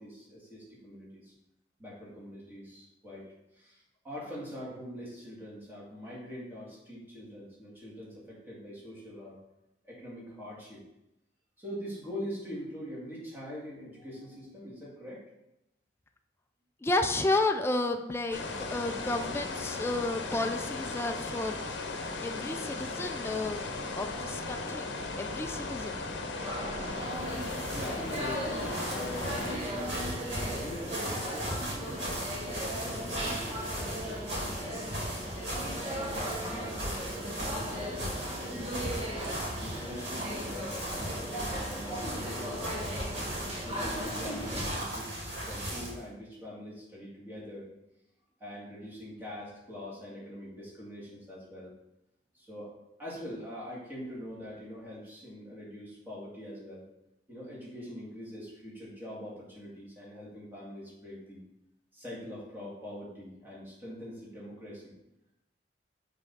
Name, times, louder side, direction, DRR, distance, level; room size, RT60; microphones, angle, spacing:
voice 1, 0.0-1.3 1.8-3.3 3.5-9.4 9.8-10.8 11.6-15.2 23.9-24.3 27.7-35.0 35.6-38.9 39.5-42.9 43.6-47.7 48.4-51.7 52.3-52.7 53.0-56.8 57.3-61.4 61.9-64.9, equal, 10° right, -7 dB, 2.1 m, -44 dB
voice 2, 16.8-21.6 22.2-23.7 24.0-26.2, left 2 dB, 15° left, 5 dB, 0.3 m, -32 dB
sound 1, 18.3-29.6, left 3 dB, 90° left, 0.7 m, -37 dB
sound 2, 26.4-44.6, equal, 35° right, 1.2 m, -37 dB
sound 3, 26.9-46.0, equal, 80° right, 2.2 m, -38 dB
5.5 x 3.5 x 5.4 m, 0.88 s
head